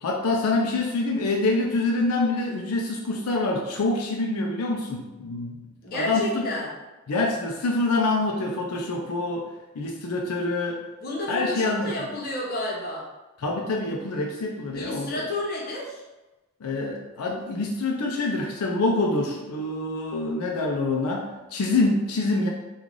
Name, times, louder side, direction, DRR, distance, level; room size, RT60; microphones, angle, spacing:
voice 1, 0.0-5.6 5.9-6.4 7.1-9.4 9.7-10.8 11.3-11.9 13.4-15.2 16.6-22.5, left 2 dB, 85° left, 0 dB, 0.4 m, -26 dB
voice 2, 5.8-6.7 11.0-13.1 14.7-16.0, left 1 dB, 45° left, -3 dB, 0.8 m, -31 dB
3.1 x 2.3 x 3.7 m, 1.1 s
head